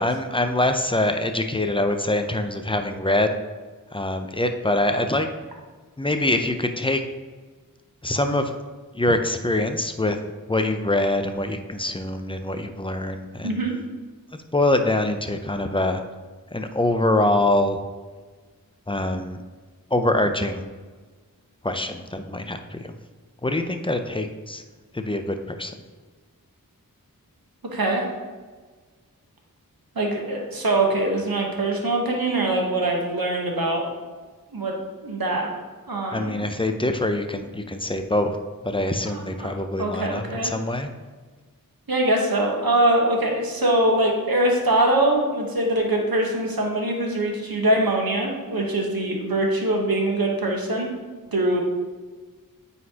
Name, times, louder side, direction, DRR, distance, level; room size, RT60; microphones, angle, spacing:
voice 1, 0.0-3.3 3.9-5.3 6.0-7.0 8.0-8.5 8.9-10.2 10.5-13.6 14.5-16.0 16.5-17.8 18.9-19.4 19.9-20.6 21.6-23.0 23.4-24.6 24.9-25.7 36.1-38.4 38.6-40.9, left 1 dB, 15° left, 6 dB, 0.5 m, -24 dB
voice 2, 27.7-28.1 29.9-33.8 34.5-34.7 35.0-35.5 35.9-36.4 39.1-39.5 39.8-40.5 41.9-50.9 51.3-51.6, right 1 dB, 80° right, 0 dB, 1.2 m, -23 dB
9.1 x 4.1 x 2.9 m, 1.4 s
wide cardioid pair, 45°, 35 cm